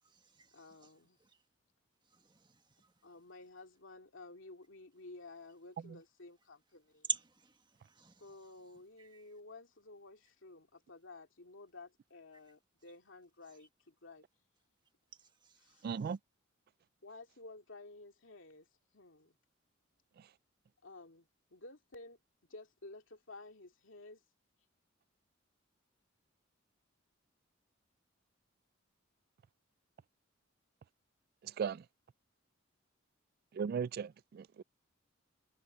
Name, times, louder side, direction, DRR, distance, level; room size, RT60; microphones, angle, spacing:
voice 1, 0.0-1.4 2.0-3.1 7.0-8.7 9.0-9.3 13.5-13.7 15.1-16.2, right 4 dB, 25° right, 1.6 m, -46 dB
voice 2, 0.5-1.2 3.0-7.1 8.2-14.3 15.6-15.9 17.0-18.7 18.9-19.3 20.8-22.2 22.5-24.2, left 2 dB, 70° left, 2.6 m, -53 dB
voice 3, 15.8-16.2 20.2-20.3 31.4-31.9 33.5-34.6, right 6 dB, 50° right, 0.3 m, -38 dB
head